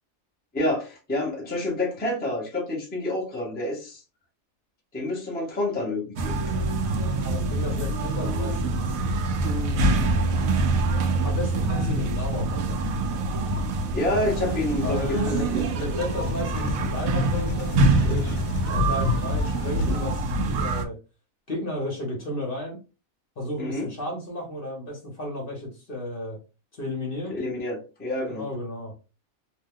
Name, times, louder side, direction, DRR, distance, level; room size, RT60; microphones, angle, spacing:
voice 1, 0.5-4.0 4.9-6.4 13.9-15.6 23.6-23.9 27.4-28.5, left 1 dB, 10° left, -2 dB, 0.7 m, -28 dB
sound 1, 6.2-20.8, right 2 dB, 80° right, 1.0 m, -25 dB
voice 2, 7.2-9.0 9.4-10.8 11.2-12.8 14.8-18.4 18.7-21.0 21.5-22.8 23.4-26.4 26.7-27.4 28.3-28.9, left 1 dB, 45° left, 0 dB, 1.0 m, -33 dB
Writing, 14.4-20.0, left 3 dB, 90° left, 1.1 m, -37 dB
2.9 x 2.2 x 3.5 m, 0.31 s
omnidirectional pair, 1.4 m